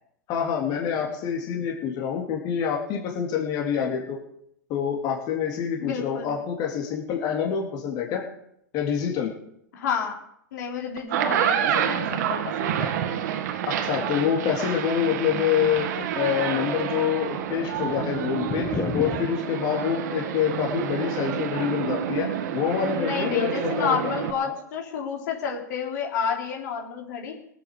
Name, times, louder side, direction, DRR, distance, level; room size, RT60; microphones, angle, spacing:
voice 1, 0.3-4.2 4.7-8.2 8.7-9.3 13.7-24.0 24.4-24.5, left 8 dB, 45° left, -1 dB, 3.4 m, -26 dB
voice 2, 5.8-6.3 9.7-10.1 10.5-12.9 22.9-27.3, left 6 dB, 70° left, 1 dB, 3.9 m, -30 dB
sound 1, 11.0-24.3, right 9 dB, 65° right, 1.8 m, -28 dB
sound 2, 15.7-16.5 16.8-16.9 17.2-19.3, left 7 dB, 25° left, 1.2 m, -32 dB
18.0 x 8.6 x 6.8 m, 0.73 s
hypercardioid pair, 115°, 10 cm